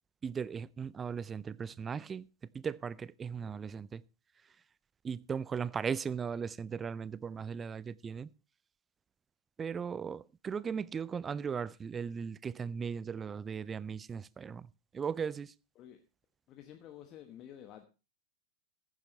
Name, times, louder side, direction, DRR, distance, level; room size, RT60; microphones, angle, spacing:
voice 1, 0.2-2.3 2.5-4.0 5.0-8.3 9.6-15.5, right 6 dB, 20° right, 0.5 m, -37 dB
voice 2, 16.5-17.9, left 10 dB, 35° left, 1.2 m, -50 dB
14.5 x 10.5 x 3.1 m
figure-of-eight pair, 90°, 0 cm